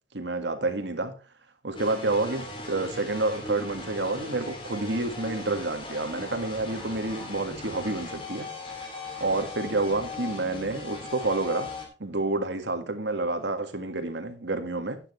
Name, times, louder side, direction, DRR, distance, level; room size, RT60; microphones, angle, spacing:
voice 1, 0.1-1.2 1.6-8.5 8.8-8.9 9.2-15.0, right 2 dB, 80° right, 1.8 m, -29 dB
sound 1, 1.7-11.9, left 2 dB, 30° left, 2.8 m, -39 dB
11.5 x 9.2 x 3.2 m
head